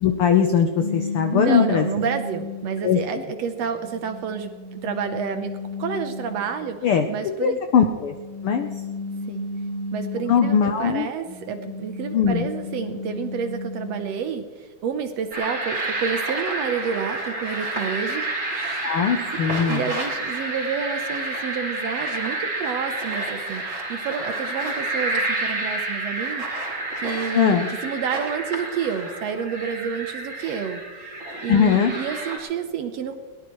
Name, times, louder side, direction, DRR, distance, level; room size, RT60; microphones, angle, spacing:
voice 1, 0.0-1.9 2.8-3.0 6.8-7.1 7.4-8.1 8.4-8.7 10.3-11.1 12.1-12.5 18.8-19.8 27.3-27.7 31.5-31.9, left 7 dB, 85° left, 6 dB, 1.2 m, -20 dB
sound 1, 0.8-2.9 3.6-6.7 7.8-10.8 11.3-14.2, left 3 dB, 50° left, 2.0 m, -33 dB
voice 2, 1.3-4.5 4.8-7.6 9.3-9.5 9.9-14.5 14.8-18.9 19.7-26.7 27.0-31.1 31.4-33.1, right 7 dB, 65° right, 7 dB, 1.8 m, -29 dB
sound 2, 15.3-32.4, right 2 dB, 25° right, 3.4 m, -29 dB
21.5 x 18.0 x 3.1 m, 1.5 s
omnidirectional pair, 3.6 m